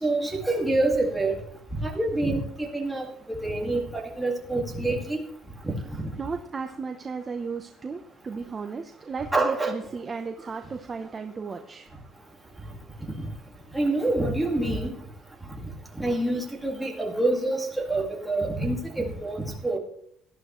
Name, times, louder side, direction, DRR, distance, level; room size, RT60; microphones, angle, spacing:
voice 1, 0.0-1.4 1.8-5.2 5.6-6.0 9.3-9.7 13.7-14.9 16.0-19.8, right 2 dB, 5° right, -1 dB, 2.0 m, -26 dB
voice 2, 6.2-11.9 12.5-12.7 13.1-13.3, right 5 dB, 20° right, 5 dB, 0.7 m, -35 dB
18.0 x 11.5 x 3.1 m, 0.66 s
cardioid pair, 175°, 0 cm